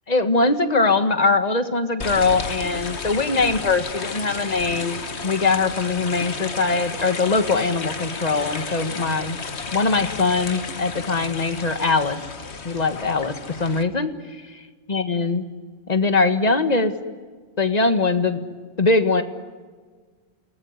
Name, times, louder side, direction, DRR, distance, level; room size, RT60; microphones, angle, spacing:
voice 1, 0.1-9.4 9.7-12.2 12.6-14.6 14.9-15.5 15.9-16.9 17.6-18.4 18.8-19.2, left 3 dB, 35° left, 9 dB, 1.7 m, -21 dB
sound 1, 2.0-13.8, left 4 dB, 60° left, 1.7 m, -32 dB
29.0 x 20.0 x 9.7 m, 1.5 s
omnidirectional pair, 1.3 m